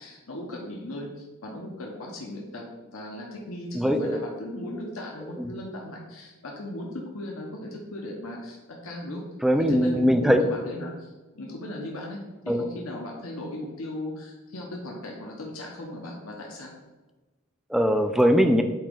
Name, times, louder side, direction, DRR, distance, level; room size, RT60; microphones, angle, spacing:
voice 1, 0.0-2.6 2.9-9.2 9.7-12.2 12.5-16.7, left 1 dB, 75° left, -1 dB, 1.0 m, -37 dB
voice 2, 3.8-4.2 5.4-5.5 9.4-10.5 12.5-12.6 17.7-18.6, equal, ahead, 6 dB, 0.3 m, -21 dB
8.8 x 3.0 x 3.7 m, 1.2 s
head